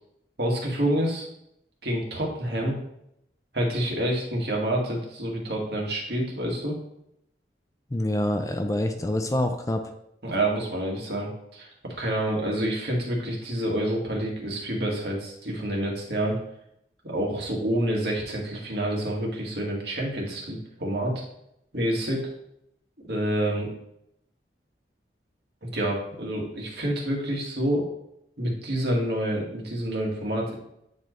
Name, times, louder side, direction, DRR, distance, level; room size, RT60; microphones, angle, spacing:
voice 1, 0.4-1.3 1.8-2.8 3.5-6.8 10.2-16.4 17.0-21.1 21.7-22.3 23.1-23.7 25.6-27.9 28.4-30.6, right 1 dB, 70° right, -1 dB, 1.9 m, -28 dB
voice 2, 7.9-9.9, left 1 dB, 20° left, 6 dB, 0.5 m, -26 dB
9.1 x 4.5 x 3.2 m, 0.77 s
head